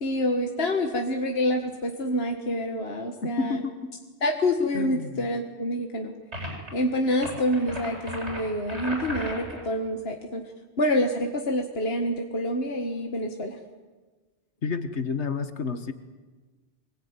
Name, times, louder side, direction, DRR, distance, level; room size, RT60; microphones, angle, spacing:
voice 1, 0.0-3.6 4.2-6.1 6.7-10.4 10.8-13.6, left 1 dB, 65° left, 3 dB, 2.0 m, -27 dB
voice 2, 3.2-3.9 4.7-5.1 14.6-15.9, left 4 dB, 85° left, 9 dB, 1.7 m, -30 dB
sound 1, 6.3-6.7 7.1-9.7, right 1 dB, 85° right, 8.3 m, -36 dB
25.5 x 20.5 x 9.7 m, 1.3 s
omnidirectional pair, 1.1 m